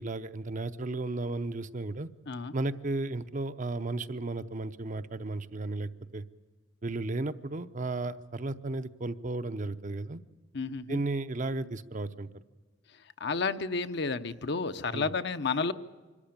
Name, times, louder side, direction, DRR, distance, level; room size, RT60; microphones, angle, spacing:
voice 1, 0.0-2.1 2.5-6.2 6.8-10.2 10.9-12.3 14.9-15.1, right 2 dB, 40° right, 11 dB, 0.7 m, -34 dB
voice 2, 10.5-11.0 13.2-15.7, left 4 dB, 60° left, 10 dB, 0.8 m, -31 dB
25.0 x 13.5 x 8.7 m, 1.4 s
head